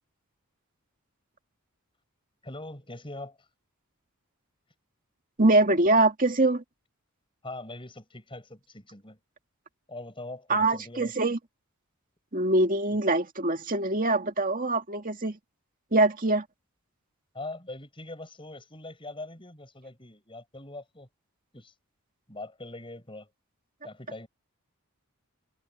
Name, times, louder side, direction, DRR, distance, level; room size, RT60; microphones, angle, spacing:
voice 1, 2.4-3.4 7.4-9.2 9.9-11.1 12.9-13.0 17.3-21.1 21.5-21.7 22.3-23.3 23.8-24.3, left 2 dB, 25° left, 6.8 m, -42 dB
voice 2, 5.4-6.6 10.5-11.4 12.3-15.4 15.9-16.4, right 2 dB, 40° right, 2.3 m, -23 dB
head